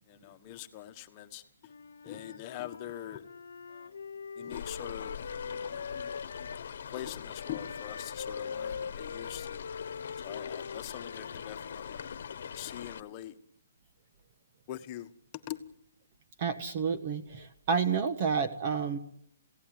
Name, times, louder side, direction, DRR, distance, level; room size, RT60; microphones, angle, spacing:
voice 1, 0.1-1.7 2.0-3.2 3.7-4.0 4.4-5.2 5.6-6.1 6.8-9.7 10.2-12.1 12.5-13.3 14.7-15.1 15.5-15.6, left 12 dB, 25° left, 7 dB, 1.5 m, -43 dB
Wind instrument woodwind instrument, 1.6-6.6 7.3-12.3, left 5 dB, 85° left, 1.2 m, -42 dB
sound 1, 4.5-13.0, left 7 dB, 60° left, 1.3 m, -42 dB
voice 2, 16.4-19.0, right 6 dB, 35° right, 9 dB, 1.4 m, -30 dB
26.5 x 17.0 x 9.5 m, 0.71 s
hypercardioid pair, 165°, 0 cm